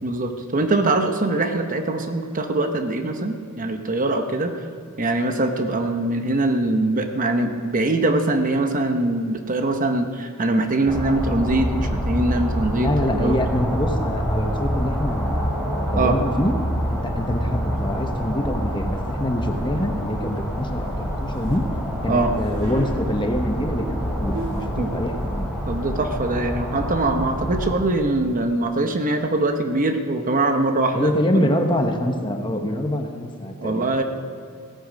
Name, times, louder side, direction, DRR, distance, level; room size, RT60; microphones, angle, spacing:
voice 1, 0.0-4.5 5.0-13.3 16.0-16.2 22.1-22.3 24.8-24.9 25.7-31.5 33.6-34.0, right 2 dB, 35° right, 6 dB, 0.9 m, -22 dB
sound 1, 10.9-27.7, equal, 5° right, 4.0 m, -26 dB
voice 2, 12.8-16.5 16.9-21.6 22.0-25.5 30.9-33.9, equal, 20° left, 4 dB, 1.1 m, -25 dB
sound 2, 19.5-19.7 20.3-21.6 22.2-22.9 23.9-24.0 24.3-24.8, equal, 75° right, 3.4 m, -37 dB
17.0 x 13.5 x 5.2 m, 2.3 s
head